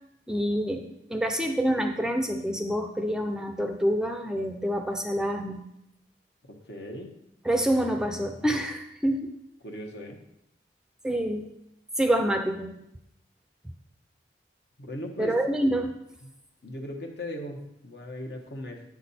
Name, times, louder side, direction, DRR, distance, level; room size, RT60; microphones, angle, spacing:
voice 1, 0.3-5.6 7.4-9.3 11.0-11.5 12.0-12.7 15.2-15.9, right 1 dB, 5° right, 4 dB, 0.5 m, -27 dB
voice 2, 6.4-7.1 9.6-10.2 14.8-15.4 16.2-16.3 16.6-18.8, left 1 dB, 65° left, 2 dB, 1.2 m, -38 dB
9.3 x 6.2 x 4.2 m, 0.82 s
head